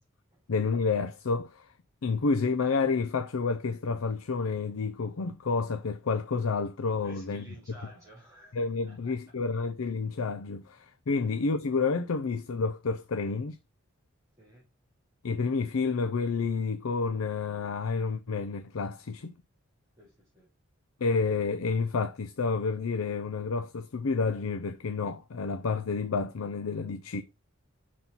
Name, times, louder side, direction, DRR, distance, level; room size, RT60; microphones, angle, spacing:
voice 1, 0.5-1.7 2.0-7.5 8.5-13.6 15.2-19.3 21.0-27.2, left 4 dB, 75° left, 0.5 m, -29 dB
voice 2, 7.0-9.2 14.4-14.6 20.0-20.5, equal, 15° right, 2.9 m, -53 dB
5.9 x 4.1 x 5.4 m
head